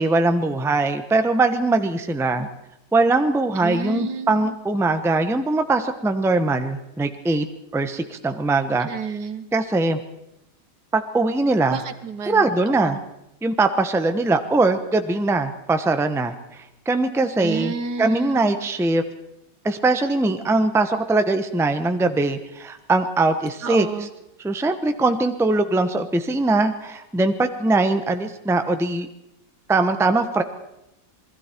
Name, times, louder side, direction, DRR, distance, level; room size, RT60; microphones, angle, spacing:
voice 1, 0.0-2.5 2.9-7.5 7.7-8.9 9.5-10.0 10.9-11.8 12.3-13.0 13.4-17.7 18.0-19.0 19.6-23.9 24.4-29.1 29.7-30.4, right 2 dB, ahead, 8 dB, 0.9 m, -21 dB
voice 2, 3.6-4.6 8.8-9.5 11.7-12.5 12.8-13.0 17.4-18.5 23.6-24.1, right 5 dB, 75° right, 10 dB, 1.9 m, -30 dB
28.0 x 20.5 x 4.5 m, 0.87 s
omnidirectional pair, 1.8 m